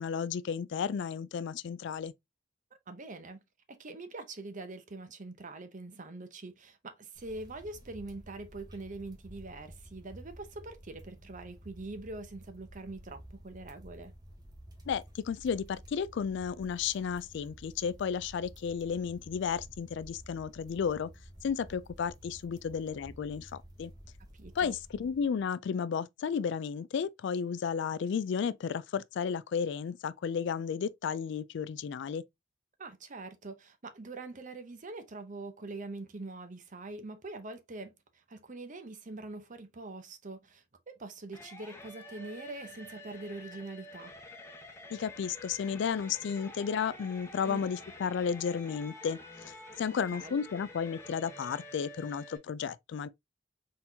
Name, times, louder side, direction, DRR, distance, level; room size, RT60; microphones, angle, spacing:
voice 1, 0.0-2.1 14.9-21.1 21.4-23.5 23.8-23.9 24.6-32.2 44.9-49.2 49.8-53.1, left 6 dB, 60° left, 0.3 m, -33 dB
voice 2, 2.9-3.4 3.7-14.1 24.4-24.7 32.8-37.9 38.3-44.1 47.4-47.6 49.9-50.4, right 2 dB, 40° right, 0.8 m, -44 dB
sound 1, 7.1-25.5, right 1 dB, 20° right, 1.1 m, -52 dB
sound 2, 41.3-52.4, left 2 dB, 15° left, 1.0 m, -49 dB
4.3 x 3.8 x 2.7 m
head